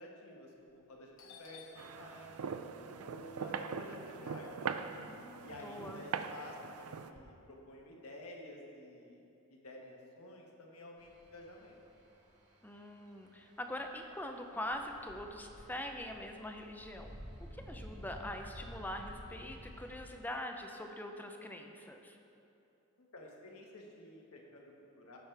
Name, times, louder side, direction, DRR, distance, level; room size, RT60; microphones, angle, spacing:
voice 1, 0.0-2.5 3.0-4.7 5.4-11.8 23.1-25.2, left 1 dB, 80° left, -1 dB, 1.5 m, -51 dB
Doorbell, 0.7-0.9 1.2-5.3 5.7-7.2, left 3 dB, 65° left, 0.9 m, -59 dB
sound 1, 1.8-7.1, right 6 dB, 75° right, 0.4 m, -42 dB
voice 2, 5.1-6.0 12.6-17.1 17.4-22.2, left 1 dB, 10° left, 4 dB, 0.5 m, -43 dB
sound 2, 11.0-20.0, equal, 35° right, 1.6 m, -52 dB
16.0 x 6.3 x 3.4 m, 2.8 s
head